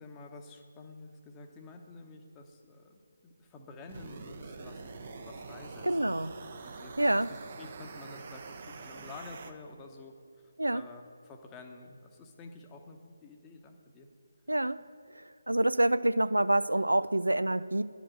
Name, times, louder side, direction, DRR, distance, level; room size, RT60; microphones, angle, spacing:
voice 1, 0.0-6.2 6.5-10.1 10.4-14.1, left 3 dB, 15° left, 3 dB, 0.9 m, -50 dB
sound 1, 3.9-9.5, right 4 dB, 40° right, 0.7 m, -45 dB
voice 2, 5.8-6.3 7.0-7.3 10.6-10.8 14.5-14.8 15.1-17.8, right 1 dB, 80° right, 16 dB, 0.3 m, -27 dB
10.5 x 5.0 x 7.7 m, 2.4 s
figure-of-eight pair, 150°, 0 cm